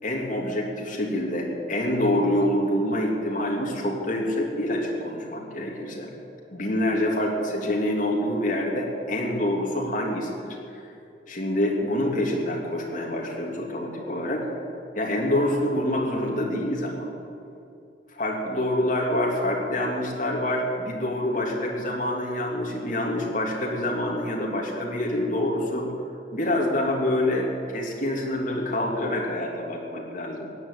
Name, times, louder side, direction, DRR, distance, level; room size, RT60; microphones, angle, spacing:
voice 1, 0.0-6.1 6.5-10.6 11.3-14.4 14.9-17.1 18.1-25.9 26.3-30.5, left 1 dB, 45° left, -1 dB, 2.9 m, -26 dB
16.0 x 10.5 x 8.5 m, 2.6 s
head